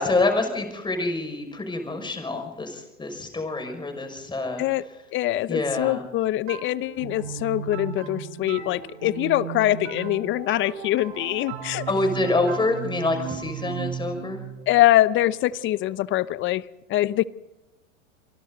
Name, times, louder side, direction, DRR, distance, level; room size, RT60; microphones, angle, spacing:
voice 1, 0.0-4.6 5.5-6.0 11.9-14.4, left 2 dB, 10° left, 5 dB, 5.9 m, -26 dB
voice 2, 5.1-11.9 14.7-16.6 16.9-17.2, left 15 dB, 30° left, 18 dB, 0.8 m, -23 dB
sound 1, 6.5-16.0, right 9 dB, 60° right, 6.5 m, -36 dB
27.5 x 23.5 x 4.0 m, 0.93 s
hypercardioid pair, 105°, 40 cm